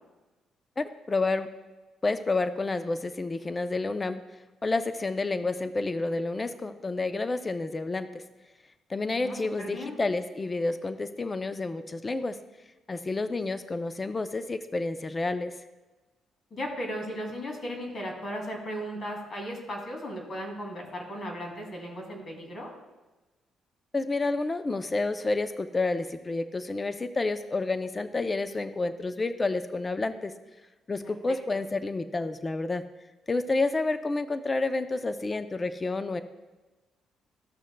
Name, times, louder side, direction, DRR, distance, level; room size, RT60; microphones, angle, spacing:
voice 1, 0.8-1.5 2.0-4.2 4.6-8.2 8.9-12.4 12.9-15.5 23.9-30.3 30.9-32.8 33.3-36.2, left 3 dB, 25° left, 10 dB, 0.5 m, -29 dB
voice 2, 9.2-10.0 16.5-22.7 31.0-31.1, equal, 45° left, 0 dB, 2.5 m, -36 dB
14.0 x 6.2 x 2.2 m, 1.2 s
cardioid pair, 90°, 0 cm